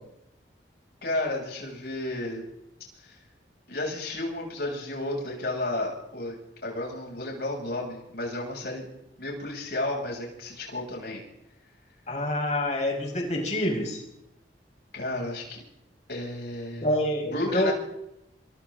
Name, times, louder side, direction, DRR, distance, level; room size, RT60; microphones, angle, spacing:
voice 1, 1.0-2.5 3.0-3.2 3.7-6.4 6.6-8.9 9.2-11.2 14.9-15.6 16.1-16.9 17.3-17.7, left 2 dB, 65° left, -1 dB, 7.6 m, -32 dB
voice 2, 12.1-14.0 16.8-17.7, left 1 dB, 40° left, 2 dB, 5.4 m, -27 dB
29.0 x 24.0 x 3.9 m, 0.85 s
head